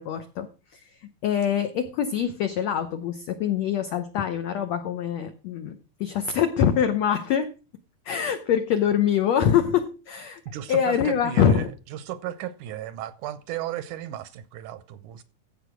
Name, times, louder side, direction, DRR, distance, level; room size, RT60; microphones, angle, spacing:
voice 1, 0.0-7.5 8.0-10.4 10.7-11.7, left 9 dB, 75° left, 1.6 m, -24 dB
voice 2, 10.5-11.6 11.9-15.2, right 12 dB, 75° right, 1.8 m, -34 dB
15.5 x 5.4 x 6.1 m
omnidirectional pair, 4.2 m